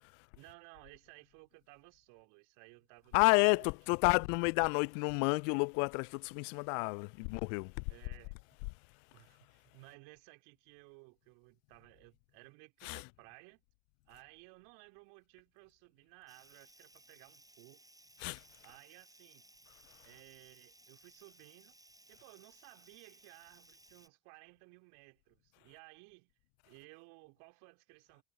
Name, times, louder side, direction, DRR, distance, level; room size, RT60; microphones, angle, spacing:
voice 1, 0.4-3.7 7.9-8.4 9.1-13.6 14.1-17.8 18.6-19.4 20.0-21.8 22.1-26.3 26.6-28.2, right 31 dB, 65° right, 3.0 m, -58 dB
voice 2, 3.1-7.7 12.8-13.0 18.2-18.4, left 36 dB, 65° left, 0.5 m, -30 dB
Water tap faucet / Liquid, 16.3-24.1, right 1 dB, 10° right, 6.0 m, -62 dB
figure-of-eight pair, 55°, 43 cm